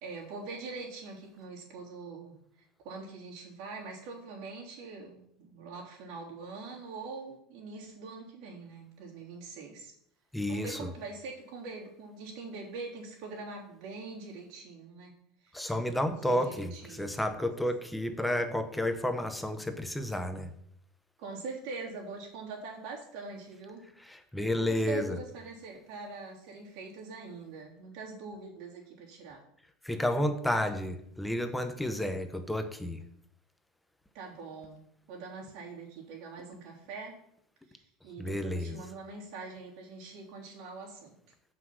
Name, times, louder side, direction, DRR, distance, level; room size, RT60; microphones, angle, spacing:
voice 1, 0.0-9.9 10.5-15.1 15.4-15.7 16.2-17.1 21.2-23.8 24.5-29.4 34.1-34.8 35.1-37.2 37.7-41.2, right 4 dB, 60° right, -2 dB, 3.4 m, -43 dB
voice 2, 10.3-10.9 15.5-20.5 24.1-25.2 29.8-33.0 38.2-38.8, left 1 dB, 5° left, 8 dB, 0.7 m, -31 dB
7.7 x 6.0 x 6.2 m, 0.69 s
supercardioid pair, 150°, 0 cm